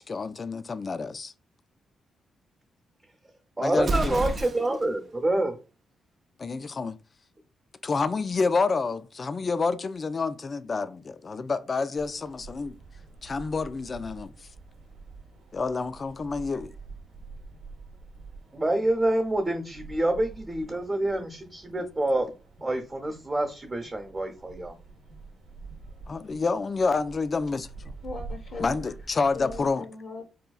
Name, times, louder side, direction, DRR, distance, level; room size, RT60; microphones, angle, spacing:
voice 1, 0.0-1.3 3.6-4.2 6.4-7.0 7.8-12.8 13.2-14.5 15.5-16.7 26.1-27.9 28.6-29.9, left 4 dB, 45° left, 0.3 m, -28 dB
voice 2, 3.6-5.5 18.5-22.3 22.6-24.8, right 1 dB, 30° right, 0.8 m, -27 dB
Explosion, 3.8-4.9, right 3 dB, 55° right, 0.4 m, -29 dB
sound 1, 12.0-29.7, right 4 dB, 80° right, 0.8 m, -46 dB
voice 3, 28.0-29.0 29.3-30.2, left 3 dB, 70° left, 0.7 m, -39 dB
4.2 x 2.3 x 2.3 m
hypercardioid pair, 45°, 0 cm